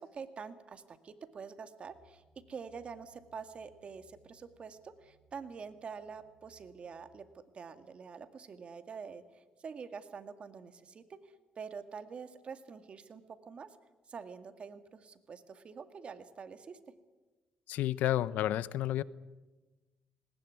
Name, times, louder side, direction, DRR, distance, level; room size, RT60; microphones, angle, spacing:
voice 1, 0.0-13.8 14.1-16.8, right 5 dB, 45° right, 9 dB, 2.1 m, -46 dB
sound 1, 1.9-7.2, left 1 dB, 70° right, 6.1 m, -68 dB
voice 2, 17.7-19.0, left 13 dB, 80° left, 18 dB, 0.8 m, -30 dB
20.0 x 19.5 x 9.6 m, 1.2 s
cardioid pair, 95°, 3 cm